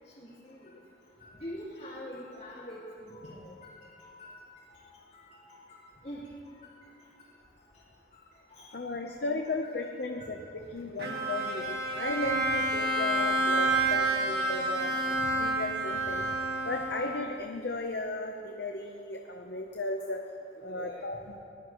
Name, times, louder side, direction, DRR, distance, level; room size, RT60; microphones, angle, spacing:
voice 1, 0.2-0.8 1.2-4.4 4.7-4.8 5.1-6.3 8.5-8.7 9.6-9.7 10.2-10.3 11.7-11.9 14.3-14.5 15.2-15.3 20.6-21.0, equal, 40° left, -12 dB, 4.2 m, -45 dB
voice 2, 8.7-10.4 10.7-14.9 15.4-16.2 16.6-20.2 20.6-21.4, left 2 dB, 55° left, 3 dB, 0.8 m, -35 dB
Bowed string instrument, 11.0-17.4, right 2 dB, 55° right, 1.9 m, -29 dB
23.5 x 19.0 x 3.1 m, 2.7 s
head